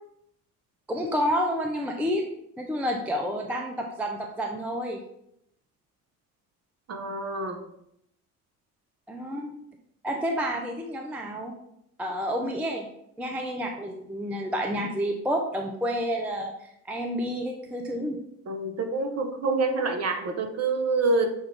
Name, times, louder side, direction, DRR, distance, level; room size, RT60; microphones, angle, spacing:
voice 1, 0.9-2.2 2.6-5.0 9.1-9.5 10.0-11.6 12.0-12.9 13.2-16.5 16.9-18.2, equal, 5° right, 3 dB, 0.4 m, -29 dB
voice 2, 6.9-7.6 18.5-21.3, right 3 dB, 35° right, 5 dB, 0.8 m, -27 dB
6.4 x 2.4 x 3.3 m, 0.77 s
hypercardioid pair, 50°, 45 cm